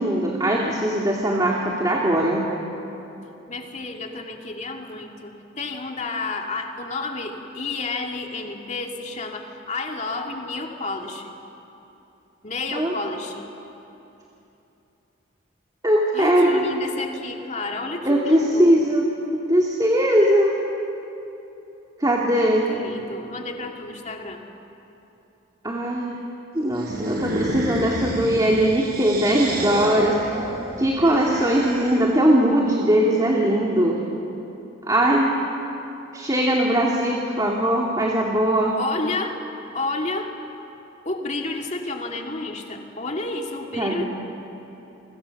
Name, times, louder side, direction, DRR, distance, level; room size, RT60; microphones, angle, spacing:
voice 1, 0.0-2.4 12.7-12.9 15.8-16.6 18.1-19.1 19.5-20.6 22.0-22.6 25.6-26.2 26.5-30.2 30.8-34.0 34.9-35.3 36.1-38.7 43.8-44.0, right 1 dB, 20° right, -1 dB, 2.3 m, -20 dB
voice 2, 3.5-11.3 12.4-13.5 16.1-18.7 22.4-24.4 38.7-39.4 39.7-40.3 41.0-44.0, left 3 dB, 35° left, 2 dB, 2.4 m, -31 dB
sound 1, 26.7-32.2, right 1 dB, 50° right, 5.9 m, -30 dB
30.0 x 24.5 x 7.1 m, 2.9 s
head